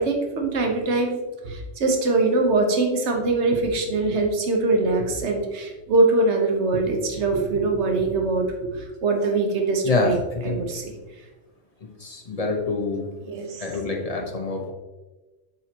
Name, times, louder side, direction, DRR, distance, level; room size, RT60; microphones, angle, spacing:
voice 1, 0.0-10.2 10.4-11.0 13.2-13.6, right 3 dB, 70° right, 3 dB, 1.4 m, -23 dB
voice 2, 9.8-10.6 12.0-13.1 13.6-14.7, left 3 dB, 30° left, 1 dB, 1.2 m, -26 dB
7.8 x 6.9 x 3.0 m, 1.2 s
omnidirectional pair, 1.2 m